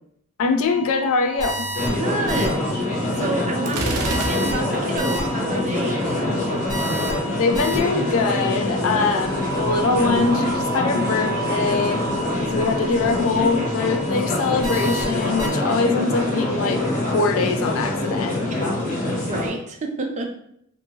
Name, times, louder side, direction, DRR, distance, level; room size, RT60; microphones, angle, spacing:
voice 1, 0.4-1.7 7.4-12.0 12.5-18.4, left 4 dB, 65° left, 7 dB, 0.3 m, -23 dB
sound 1, 0.6-15.5, right 2 dB, 15° right, 0.8 m, -32 dB
sound 2, 1.8-19.5, left 1 dB, 35° left, 0.7 m, -25 dB
voice 2, 1.9-2.6 3.2-6.5 19.1-20.3, right 2 dB, 30° right, 3 dB, 0.3 m, -29 dB
Gunshot gunfire, 3.7-4.9, right 2 dB, 85° right, 0.6 m, -28 dB
2.6 x 2.5 x 2.7 m, 0.72 s
head